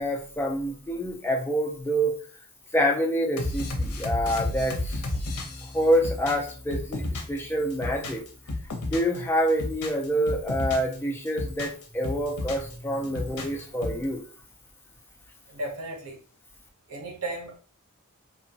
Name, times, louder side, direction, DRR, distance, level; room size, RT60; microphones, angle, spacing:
voice 1, 0.0-2.2 2.7-5.0 5.7-8.2 8.9-14.2, equal, 10° left, 1 dB, 0.3 m, -27 dB
sound 1, 3.4-7.4 7.7-9.2 9.5-10.9 11.3-12.7 13.0-14.0, left 2 dB, 80° left, 0.6 m, -32 dB
voice 2, 15.5-16.2 16.9-17.6, right 1 dB, 75° right, 1 dB, 0.8 m, -35 dB
2.8 x 2.1 x 2.7 m, 0.41 s
head